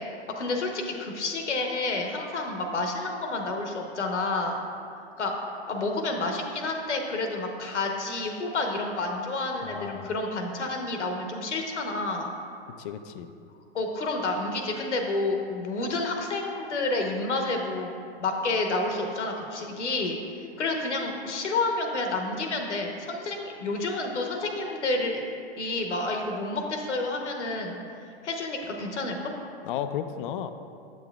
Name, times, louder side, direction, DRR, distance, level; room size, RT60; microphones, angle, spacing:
voice 1, 0.0-4.6 5.2-5.3 5.7-12.3 13.7-17.9 18.2-25.2 25.6-27.8 28.2-29.3, left 2 dB, 90° left, 2 dB, 1.0 m, -29 dB
voice 2, 9.6-10.1 12.8-13.3 29.6-30.5, left 9 dB, 50° left, 10 dB, 0.4 m, -34 dB
7.7 x 7.1 x 2.3 m, 2.4 s
hypercardioid pair, 110°, 34 cm